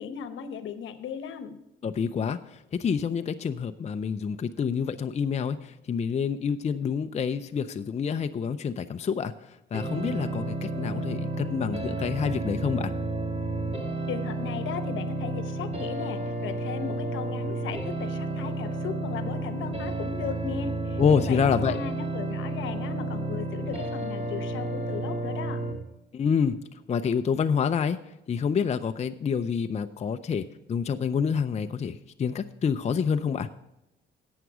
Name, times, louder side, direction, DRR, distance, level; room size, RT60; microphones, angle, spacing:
voice 1, 0.0-1.6 14.1-25.6, left 7 dB, 75° left, 10 dB, 1.0 m, -37 dB
voice 2, 1.8-12.9 21.0-21.7 26.1-26.6 26.9-28.0 28.3-33.5, left 6 dB, 35° left, 8 dB, 0.5 m, -27 dB
sound 1, 9.7-25.7, right 2 dB, 30° right, 2.2 m, -31 dB
11.0 x 8.1 x 4.8 m, 0.90 s
cardioid pair, 90°, 20 cm